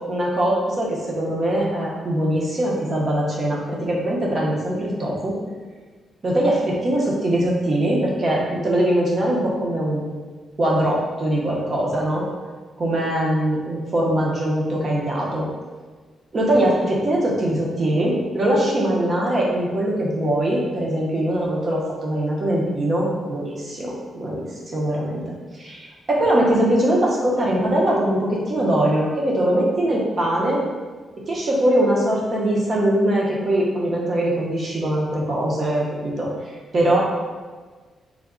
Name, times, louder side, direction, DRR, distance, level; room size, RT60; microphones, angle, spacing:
voice 1, 0.0-5.4 6.2-10.0 10.6-12.2 12.8-15.5 16.3-24.4 24.7-25.2 25.6-30.6 31.3-36.3 36.7-37.0, right 1 dB, 40° right, -3 dB, 0.8 m, -21 dB
3.4 x 2.2 x 3.7 m, 1.4 s
cardioid pair, 135°, 0 cm